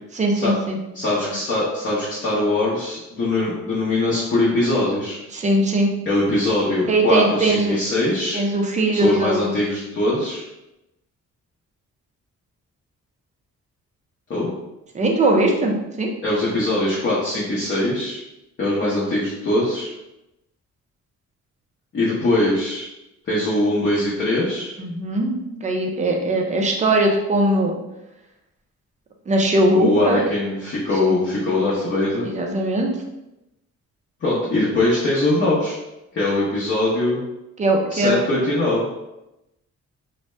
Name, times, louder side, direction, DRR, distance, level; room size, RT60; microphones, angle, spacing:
voice 1, 0.1-0.8 1.2-1.3 5.3-5.9 6.9-7.8 8.3-9.5 14.9-16.1 24.8-27.8 29.3-30.2 31.0-31.1 32.3-32.9 37.6-38.2, right 1 dB, 25° right, 2 dB, 0.4 m, -20 dB
voice 2, 0.9-5.2 6.1-8.4 8.9-10.4 14.3-14.5 16.2-18.2 18.6-19.9 21.9-22.9 23.3-24.7 29.7-32.3 34.2-35.8 36.1-37.2 37.9-38.9, left 2 dB, 40° left, -8 dB, 0.7 m, -22 dB
2.6 x 2.1 x 3.2 m, 0.93 s
cardioid pair, 155°, 29 cm